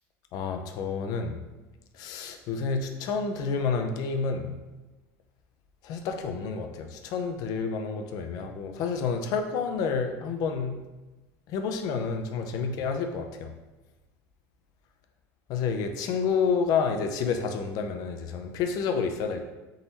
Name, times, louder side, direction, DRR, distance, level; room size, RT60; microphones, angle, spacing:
voice 1, 0.3-1.4 1.9-4.5 5.8-10.8 11.5-13.5 15.5-19.4, left 5 dB, 55° left, 6 dB, 0.6 m, -29 dB
3.8 x 3.0 x 4.0 m, 1.1 s
supercardioid pair, 125°, 8 cm